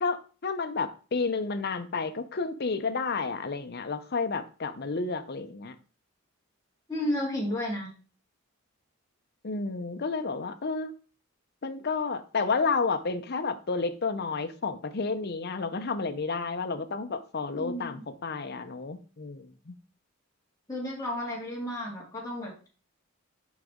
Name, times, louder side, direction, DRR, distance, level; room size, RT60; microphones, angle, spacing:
voice 1, 0.0-5.8 9.4-10.9 11.6-19.7, left 4 dB, 45° left, 0.6 m, -31 dB
voice 2, 6.9-7.9 17.6-18.0 20.7-22.7, left 1 dB, 15° left, 2.2 m, -32 dB
6.3 x 5.1 x 3.7 m
head